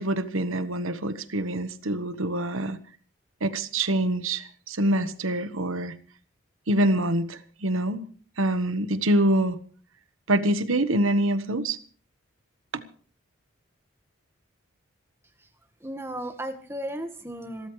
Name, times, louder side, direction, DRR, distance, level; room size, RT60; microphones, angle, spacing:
voice 1, 0.0-2.8 3.4-5.9 6.7-8.0 8.4-9.6 10.3-11.8 12.7-12.8, right 1 dB, 80° right, 12 dB, 1.3 m, -25 dB
voice 2, 15.8-17.7, right 1 dB, 10° right, 6 dB, 1.6 m, -35 dB
27.0 x 13.5 x 3.2 m, 0.42 s
head